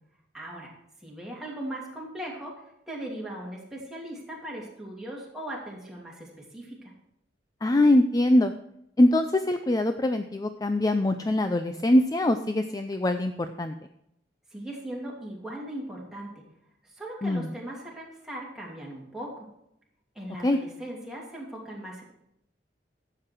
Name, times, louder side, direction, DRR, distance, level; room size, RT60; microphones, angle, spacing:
voice 1, 0.3-0.7 1.0-6.9 14.5-16.3 17.0-19.5 20.1-22.0, right 1 dB, 5° right, -4 dB, 2.8 m, -38 dB
voice 2, 7.6-8.5 9.0-13.3 13.6-13.7 17.2-17.5 20.4-20.6, left 1 dB, 20° left, 8 dB, 0.4 m, -23 dB
12.0 x 7.8 x 4.6 m, 0.78 s
head